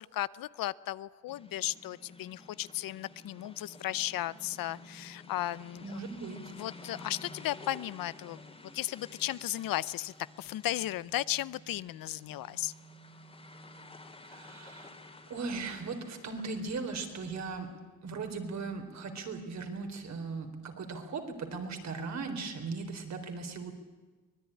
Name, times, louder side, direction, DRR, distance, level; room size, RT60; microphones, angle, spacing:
voice 1, 0.0-6.0 6.5-8.4 8.7-12.7, left 14 dB, 70° left, 19 dB, 0.7 m, -35 dB
sound 1, 1.3-17.7, left 2 dB, 15° left, 2.7 m, -52 dB
voice 2, 5.8-6.4 14.2-14.9 15.3-17.7 18.0-23.7, right 4 dB, 50° right, 5 dB, 4.0 m, -38 dB
24.0 x 20.0 x 10.0 m, 1.3 s
cardioid pair, 140°, 36 cm